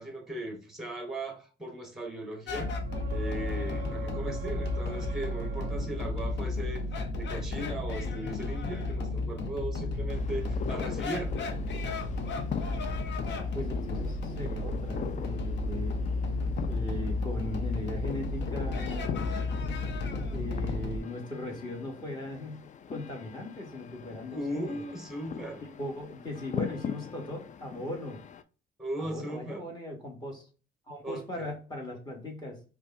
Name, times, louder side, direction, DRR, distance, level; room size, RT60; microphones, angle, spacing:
voice 1, 0.0-2.7 3.1-6.9 7.2-11.4 24.3-25.6 28.8-29.7 31.0-31.5, right 1 dB, ahead, 1.0 m, -38 dB
sound 1, 2.5-21.0, left 2 dB, 60° left, 0.8 m, -33 dB
sound 2, 2.8-6.6 10.3-10.4, right 8 dB, 45° right, 0.4 m, -44 dB
sound 3, 10.1-28.4, left 8 dB, 40° left, 0.4 m, -41 dB
voice 2, 13.3-16.0 16.7-19.2 20.3-24.8 25.6-28.2 29.0-30.5 30.9-32.6, left 1 dB, 20° left, 1.6 m, -39 dB
5.0 x 2.2 x 2.5 m
cardioid pair, 90°, 20 cm